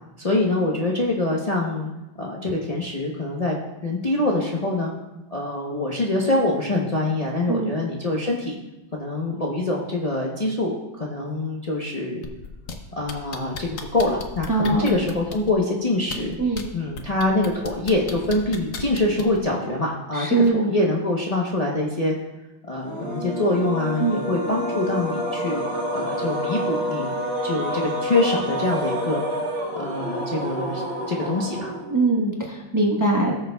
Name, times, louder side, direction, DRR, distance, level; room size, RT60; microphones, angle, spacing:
voice 1, 0.2-1.9 2.2-3.6 3.8-4.9 5.3-8.6 8.9-12.2 13.0-22.2 22.7-27.1 27.4-31.7, left 2 dB, 75° left, -3 dB, 0.3 m, -25 dB
sound 1, 12.2-12.7 13.1-15.5 16.0-16.6 17.0-19.4 20.4-20.5, left 5 dB, 55° left, 1.0 m, -34 dB
voice 2, 14.5-15.0 16.4-16.6 20.1-20.7 24.0-24.2 31.9-33.3, right 3 dB, 15° right, -1 dB, 0.8 m, -22 dB
sound 2, 22.8-32.2, equal, 75° right, 3.1 m, -28 dB
19.0 x 6.6 x 2.3 m, 1.0 s
omnidirectional pair, 2.2 m